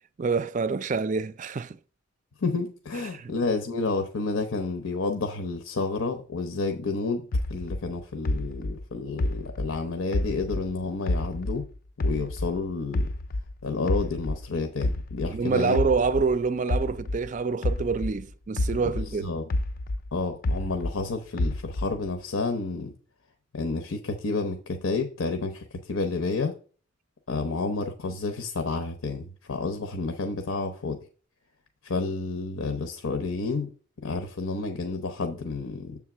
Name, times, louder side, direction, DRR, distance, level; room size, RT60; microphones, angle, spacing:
voice 1, 0.2-1.8 3.1-3.3 15.3-19.3, right 4 dB, 40° right, 0.4 m, -26 dB
voice 2, 2.4-7.2 7.5-11.7 12.0-13.1 13.6-15.8 18.9-19.4 20.1-22.9 23.5-26.5 27.3-31.0 31.8-33.7 34.0-36.0, left 3 dB, 90° left, 0.8 m, -30 dB
sound 1, 7.3-10.7 11.1-13.5 13.9-18.2 18.6-21.0 21.4-22.1, left 1 dB, 45° left, 0.3 m, -29 dB
7.3 x 3.6 x 6.0 m
head